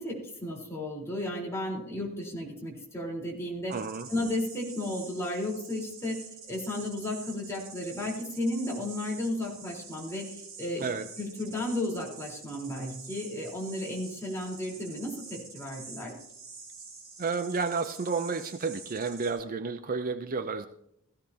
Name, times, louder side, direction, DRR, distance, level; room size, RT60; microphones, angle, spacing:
voice 1, 0.0-3.7 4.1-6.2 6.5-10.9 11.2-16.1, left 1 dB, 10° left, -3 dB, 4.1 m, -34 dB
voice 2, 3.7-4.1 10.8-11.1 17.2-20.7, right 4 dB, 40° right, 9 dB, 0.5 m, -31 dB
sound 1, 3.7-19.3, right 5 dB, 65° right, 5.2 m, -47 dB
16.5 x 15.5 x 2.9 m, 0.75 s
head